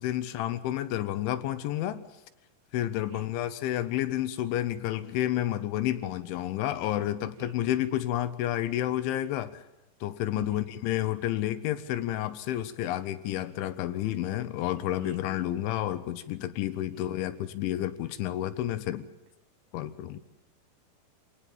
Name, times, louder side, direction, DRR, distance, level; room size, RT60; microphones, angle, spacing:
voice 1, 0.0-2.0 2.7-9.6 10.0-19.1 19.7-20.2, left 13 dB, 75° left, 12 dB, 3.1 m, -30 dB
voice 2, 7.4-7.8 10.3-10.6 14.8-15.5 16.9-17.1, right 12 dB, 80° right, 9 dB, 4.3 m, -48 dB
27.0 x 18.5 x 7.2 m, 0.93 s
omnidirectional pair, 5.9 m